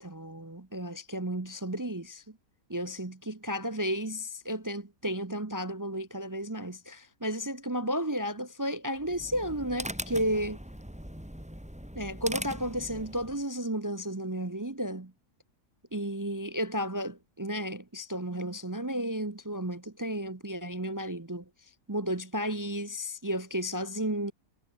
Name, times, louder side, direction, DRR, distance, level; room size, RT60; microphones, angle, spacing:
voice 1, 0.0-2.4 2.7-10.6 11.9-15.1 15.9-21.5 21.9-24.3, equal, 25° right, 0.4 m, -33 dB
sound 1, 9.0-13.4, equal, 5° right, 3.4 m, -40 dB
omnidirectional pair, 1.8 m